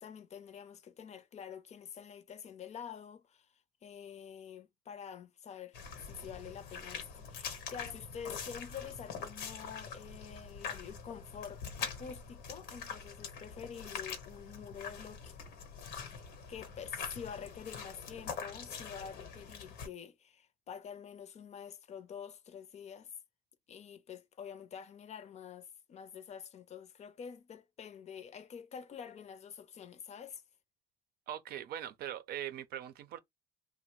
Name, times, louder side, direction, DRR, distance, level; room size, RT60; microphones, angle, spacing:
voice 1, 0.0-3.5 3.8-15.4 16.5-23.1 23.7-30.4, left 7 dB, 40° left, 0.5 m, -47 dB
sound 1, 5.7-19.9, left 6 dB, 90° left, 0.9 m, -44 dB
voice 2, 31.3-33.2, right 11 dB, 70° right, 0.5 m, -41 dB
2.8 x 2.0 x 3.0 m
cardioid pair, 110°, 17 cm